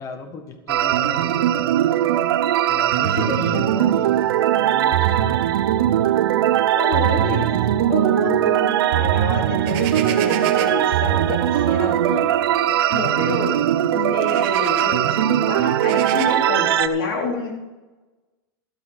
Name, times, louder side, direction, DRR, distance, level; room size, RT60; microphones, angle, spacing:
voice 1, 0.0-1.7 2.7-4.2 4.6-5.5, left 4 dB, 25° left, 7 dB, 1.6 m, -36 dB
sound 1, 0.7-16.9, right 11 dB, 80° right, 0.8 m, -20 dB
voice 2, 3.0-3.6 5.0-5.2 6.7-12.3 12.9-17.6, left 3 dB, 70° left, -1 dB, 3.8 m, -28 dB
sound 2, 9.6-10.9 12.0-12.2 12.6-12.7 13.5-13.6 14.0-14.9 15.7-16.3, right 11 dB, 45° right, 1.3 m, -32 dB
13.0 x 8.1 x 6.4 m, 1.2 s
supercardioid pair, 145°, 12 cm